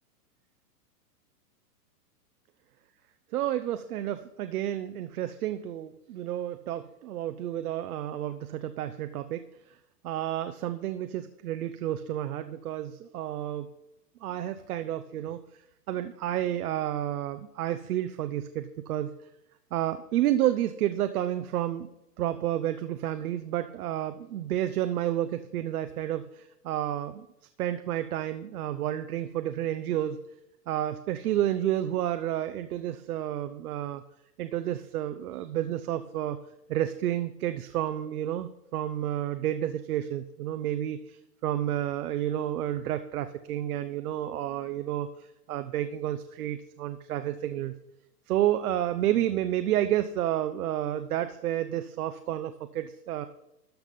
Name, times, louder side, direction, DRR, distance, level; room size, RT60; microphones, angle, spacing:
voice 1, 3.3-9.4 10.0-13.7 14.2-15.4 15.9-19.1 19.7-21.9 22.2-27.3 27.6-30.2 30.7-34.0 34.4-36.4 36.7-47.7 48.3-53.3, right 12 dB, 65° right, 10 dB, 0.7 m, -30 dB
13.0 x 5.8 x 5.2 m, 0.86 s
hypercardioid pair, 160°, 48 cm